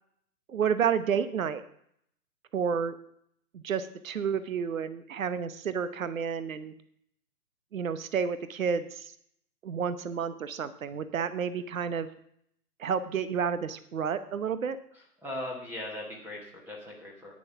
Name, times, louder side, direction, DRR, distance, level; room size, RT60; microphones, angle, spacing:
voice 1, 0.5-1.6 2.5-3.0 3.5-6.7 7.7-9.1 9.6-12.1 12.8-14.8, right 7 dB, 55° right, 13 dB, 1.0 m, -30 dB
voice 2, 14.9-17.3, left 1 dB, 5° right, -1 dB, 1.2 m, -39 dB
10.5 x 9.6 x 5.8 m, 0.69 s
hypercardioid pair, 150°, 48 cm